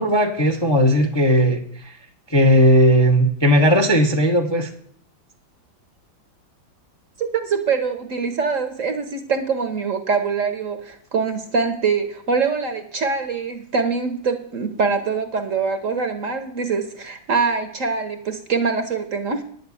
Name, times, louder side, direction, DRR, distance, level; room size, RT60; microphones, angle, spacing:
voice 1, 0.0-1.9 2.3-4.7, equal, 20° left, 5 dB, 0.6 m, -17 dB
voice 2, 7.2-19.4, right 5 dB, 50° right, 8 dB, 1.1 m, -24 dB
9.8 x 6.6 x 8.4 m, 0.62 s
omnidirectional pair, 2.1 m